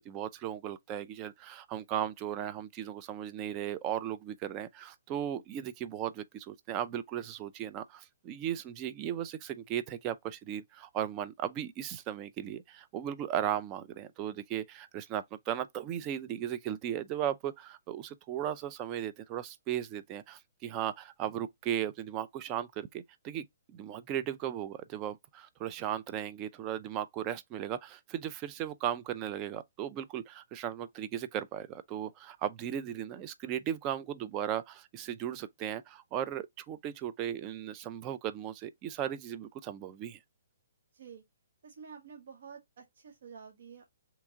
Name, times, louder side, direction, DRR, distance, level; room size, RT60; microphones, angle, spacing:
voice 1, 0.0-40.2, right 10 dB, 30° right, 0.3 m, -36 dB
voice 2, 40.9-41.2 41.6-43.8, right 6 dB, 65° right, 0.7 m, -49 dB
2.9 x 2.3 x 3.7 m
hypercardioid pair, 130°, 0 cm